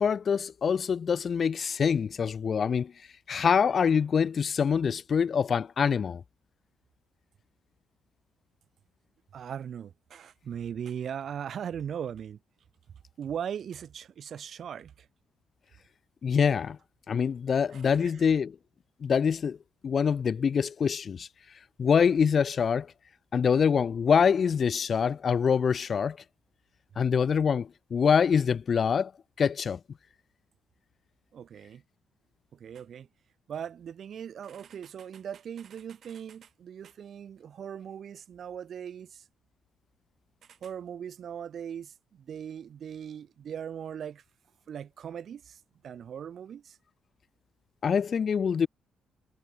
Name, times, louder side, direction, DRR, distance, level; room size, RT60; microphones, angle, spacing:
voice 1, 0.0-2.9 3.3-6.2 16.2-16.8 17.1-18.5 19.0-19.6 19.8-21.3 21.8-22.9 23.3-26.2 27.0-29.1 29.4-29.8 47.8-48.7, left 6 dB, 50° left, 1.2 m, -25 dB
voice 2, 9.3-12.4 13.2-15.1 17.7-18.3 31.3-31.8 32.5-33.1 33.5-39.3 40.4-44.2 44.7-46.8, right 8 dB, 60° right, 3.7 m, -39 dB
cardioid pair, 90°, 0 cm